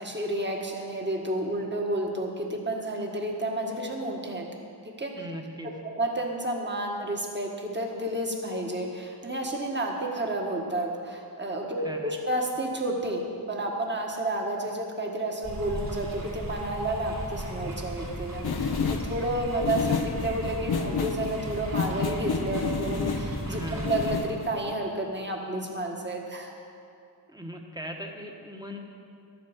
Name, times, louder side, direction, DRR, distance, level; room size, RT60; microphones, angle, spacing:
voice 1, 0.0-4.5 4.8-5.1 5.6-26.5, right 1 dB, 25° right, 0 dB, 1.6 m, -31 dB
voice 2, 5.2-5.7 11.8-12.1 23.5-23.9 27.3-28.8, equal, 10° right, 2 dB, 1.3 m, -38 dB
sound 1, 15.4-24.2, right 1 dB, 55° right, 3.5 m, -36 dB
sound 2, 18.4-24.7, left 6 dB, 65° left, 0.7 m, -31 dB
12.0 x 8.7 x 7.3 m, 2.5 s
wide cardioid pair, 100°, 41 cm